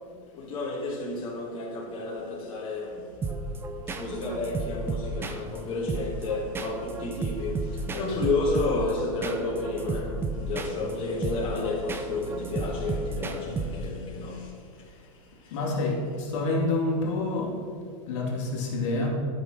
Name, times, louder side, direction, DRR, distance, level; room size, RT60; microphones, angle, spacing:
voice 1, 0.3-3.2 3.9-15.6, left 3 dB, 30° left, 1.7 m, -31 dB
sound 1, 3.2-14.1, right 3 dB, 15° right, 0.6 m, -33 dB
voice 2, 15.5-17.6 18.1-19.1, left 2 dB, 55° left, 2.4 m, -27 dB
12.0 x 5.6 x 6.3 m
hypercardioid pair, 135°, 18 cm